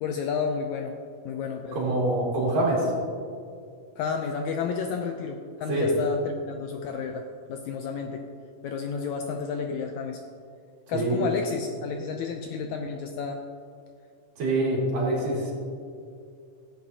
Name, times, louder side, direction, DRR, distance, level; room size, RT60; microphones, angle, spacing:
voice 1, 0.0-0.9 1.2-1.9 4.0-8.2 8.6-10.2 10.9-13.4, left 5 dB, 80° left, 4 dB, 1.6 m, -31 dB
voice 2, 1.7-2.9 5.7-5.9 10.9-11.3 14.4-15.5, right 2 dB, 80° right, -4 dB, 4.0 m, -25 dB
16.0 x 8.6 x 2.8 m, 2.4 s
omnidirectional pair, 3.7 m